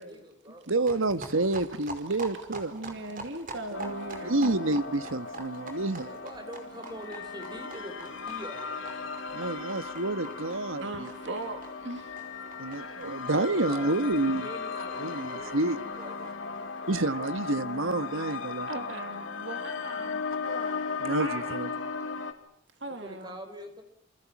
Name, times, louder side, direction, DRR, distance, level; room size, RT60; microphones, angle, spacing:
voice 1, 0.0-0.7 6.0-9.1 12.8-13.0 13.4-17.3 22.8-23.8, equal, 20° right, 4.9 m, -45 dB
voice 2, 0.7-2.7 3.7-4.0 4.2-6.1 9.3-11.1 12.6-14.5 15.0-15.8 16.9-18.7 21.0-21.7, right 2 dB, 80° right, 1.5 m, -29 dB
sound 1, 0.8-18.0 18.3-18.4 18.6-18.7 18.9-19.0 19.2-19.9, right 3 dB, 40° right, 5.1 m, -46 dB
voice 3, 2.7-4.6 10.8-12.1 12.6-12.8 13.1-13.2 18.7-21.6 22.8-23.4, right 2 dB, 60° right, 2.4 m, -39 dB
sound 2, 3.7-22.3, left 4 dB, 70° left, 3.4 m, -37 dB
29.0 x 28.5 x 6.1 m
head